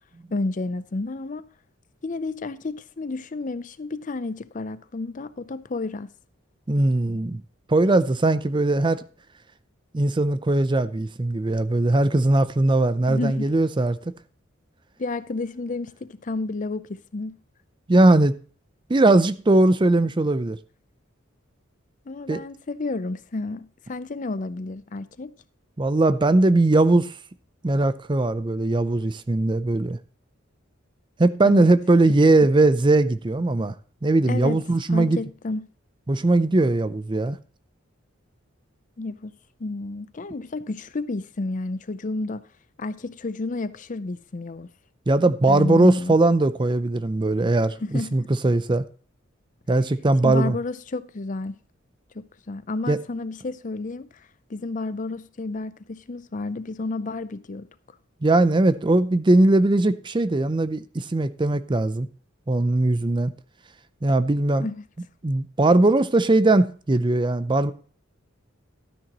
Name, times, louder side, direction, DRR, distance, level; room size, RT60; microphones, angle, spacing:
voice 1, 0.3-1.5 2.0-6.1 13.1-13.5 15.0-17.4 22.1-25.3 31.4-31.7 34.3-34.6 34.9-35.7 39.0-39.3 39.6-42.5 42.8-44.7 45.5-46.2 47.9-48.2 50.2-51.6 52.1-57.7 64.6-64.9, left 3 dB, 40° left, 0.5 m, -31 dB
voice 2, 6.7-7.4 7.7-9.0 9.9-14.0 17.9-18.3 18.9-20.6 22.3-22.4 25.8-27.1 27.6-30.0 31.2-33.7 34.0-35.2 36.1-37.4 45.1-48.8 49.7-50.6 52.9-53.0 58.2-62.1 62.5-63.3 64.0-64.7 65.2-67.7, right 2 dB, 25° right, 0.5 m, -20 dB
12.5 x 10.0 x 3.0 m
head